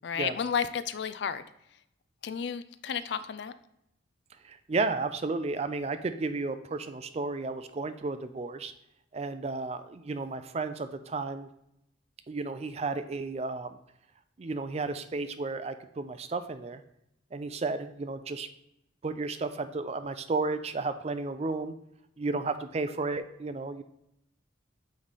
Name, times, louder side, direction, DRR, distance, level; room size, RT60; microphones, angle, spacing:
voice 1, 0.0-1.4 2.2-3.5, left 7 dB, 60° left, 13 dB, 0.4 m, -32 dB
voice 2, 4.4-8.7 9.1-11.5 12.3-13.8 14.4-16.8 17.3-18.5 19.0-21.7 22.2-23.8, right 3 dB, 35° right, 10 dB, 0.4 m, -33 dB
8.7 x 3.2 x 4.1 m, 0.80 s
head